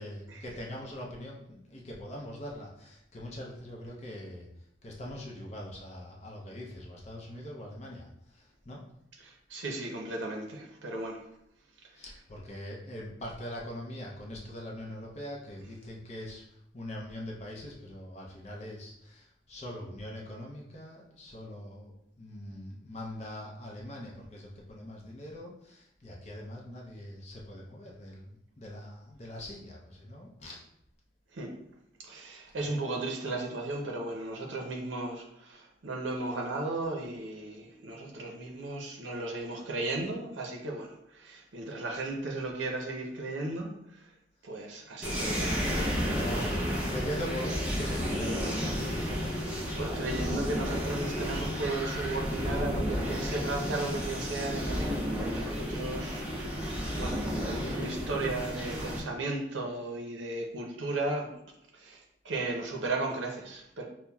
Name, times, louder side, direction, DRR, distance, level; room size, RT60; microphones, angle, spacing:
voice 1, 0.0-4.5 4.8-8.8 11.9-30.6 32.6-32.7 46.1-49.5, left 1 dB, 35° left, -2 dB, 0.5 m, -42 dB
voice 2, 9.2-11.2 31.3-31.5 32.0-44.1 44.4-45.6 46.4-46.7 49.8-56.7 57.0-61.3 61.7-63.8, right 2 dB, 75° right, 1 dB, 0.6 m, -35 dB
sound 1, 45.0-59.0, equal, 5° right, 0.6 m, -32 dB
5.5 x 2.1 x 2.3 m, 0.77 s
head